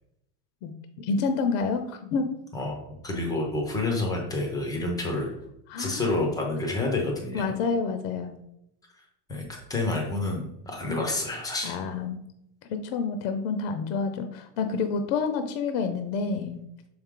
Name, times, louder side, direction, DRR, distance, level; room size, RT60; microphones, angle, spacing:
voice 1, 1.0-2.3 5.7-6.2 7.3-8.4 11.6-12.2 12.7-16.6, left 4 dB, 50° left, 8 dB, 0.6 m, -28 dB
voice 2, 2.5-5.3 5.8-7.4 9.3-11.8, left 2 dB, 10° left, 1 dB, 0.5 m, -29 dB
6.2 x 4.8 x 3.6 m, 0.79 s
cardioid pair, 175°, 49 cm